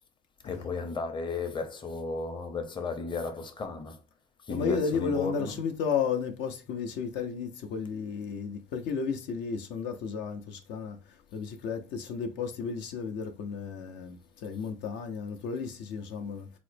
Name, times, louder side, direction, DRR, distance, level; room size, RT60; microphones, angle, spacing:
voice 1, 0.4-4.0 4.4-5.6, left 4 dB, 25° left, 0.7 m, -34 dB
voice 2, 4.5-11.0 11.3-16.6, left 6 dB, 65° left, 0.5 m, -33 dB
3.8 x 2.0 x 3.2 m
supercardioid pair, 80°, 19 cm